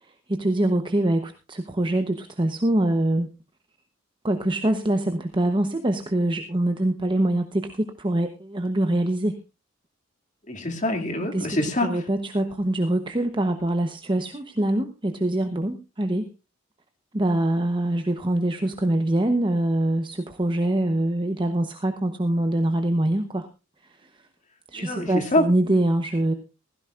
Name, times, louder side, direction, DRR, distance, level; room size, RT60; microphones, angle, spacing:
voice 1, 0.0-3.3 4.2-9.4 11.2-11.5 11.8-16.3 17.1-23.5 23.8-24.3 24.7-26.3, right 1 dB, 25° right, 6 dB, 0.9 m, -24 dB
voice 2, 10.5-12.0 24.7-25.5, left 1 dB, 40° left, 3 dB, 2.4 m, -25 dB
16.5 x 15.5 x 2.5 m, 0.28 s
head